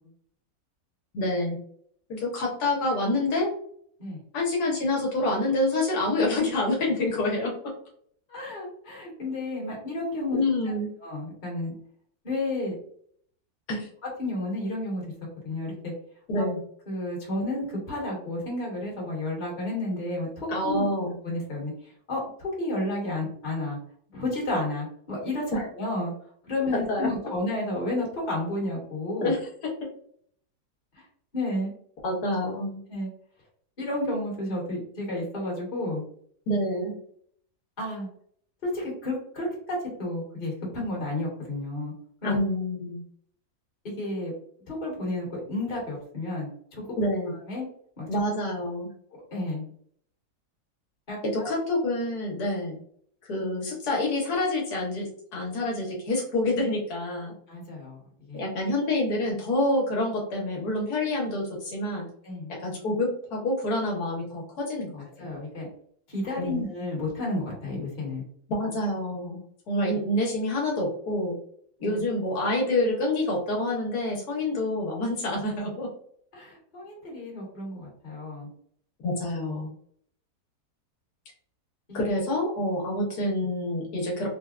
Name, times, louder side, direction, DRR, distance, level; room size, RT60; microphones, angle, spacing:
voice 1, 1.1-1.6 2.1-3.5 4.3-7.5 10.3-10.9 13.7-13.9 16.3-16.6 20.5-21.1 25.5-25.6 26.7-27.1 29.2-29.4 32.0-32.8 36.5-37.0 42.2-43.0 47.0-47.3 48.1-48.9 51.2-52.8 53.2-57.3 58.3-62.1 62.6-65.3 66.4-66.6 68.5-69.4 69.7-71.3 71.8-75.9 79.0-79.7 81.9-84.3, left 1 dB, 75° left, -1 dB, 1.3 m, -27 dB
voice 2, 8.3-10.4 11.0-11.7 12.2-12.7 14.2-15.0 15.4-15.9 16.3-16.4 16.9-20.8 21.2-21.7 22.1-23.8 24.1-25.5 25.8-26.1 26.5-29.3 31.3-31.7 32.9-33.1 33.8-36.0 37.8-38.1 38.6-41.9 42.2-42.4 43.8-44.3 44.7-46.8 47.5-47.6 48.0-48.1 49.3-49.7 51.1-51.5 57.5-58.0 58.3-58.4 62.2-62.5 65.2-65.7 66.1-68.2 71.8-72.0 76.3-78.5 81.9-82.0, left 1 dB, 30° left, -3 dB, 1.2 m, -31 dB
3.4 x 2.2 x 2.3 m, 0.62 s
omnidirectional pair, 1.7 m